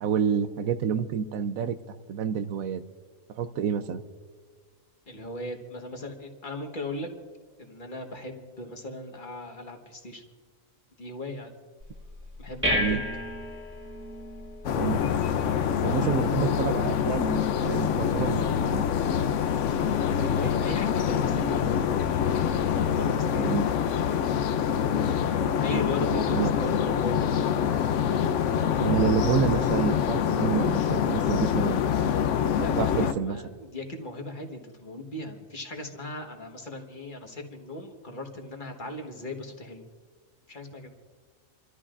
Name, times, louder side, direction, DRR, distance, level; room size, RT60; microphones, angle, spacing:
voice 1, 0.0-1.8 2.1-2.8 3.3-4.0 12.7-13.0 14.8-15.0 15.8-18.8 23.4-23.7 26.3-26.5 28.8-31.8 32.6-33.4, right 7 dB, 85° right, 11 dB, 1.1 m, -28 dB
voice 2, 5.1-7.1 7.6-10.2 11.0-11.5 12.4-13.0 15.4-16.8 20.0-21.8 22.8-23.6 25.6-27.4 32.6-39.8 40.5-41.0, left 2 dB, 35° left, 3 dB, 1.5 m, -37 dB
sound 1, 11.8-22.8, equal, 10° right, 1.9 m, -37 dB
sound 2, 14.6-33.1, left 8 dB, 65° left, 0.9 m, -25 dB
28.0 x 13.5 x 2.5 m, 1.5 s
omnidirectional pair, 1.4 m